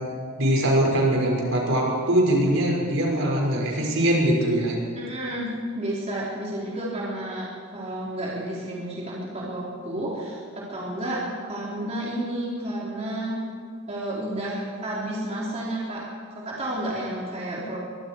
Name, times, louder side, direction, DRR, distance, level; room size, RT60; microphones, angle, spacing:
voice 1, 0.4-4.8, right 1 dB, 65° right, -2 dB, 5.9 m, -22 dB
voice 2, 5.0-11.2 11.5-13.4 13.9-16.1 16.3-17.8, right 1 dB, 30° right, -6 dB, 4.2 m, -31 dB
24.0 x 23.0 x 4.8 m, 2.1 s
head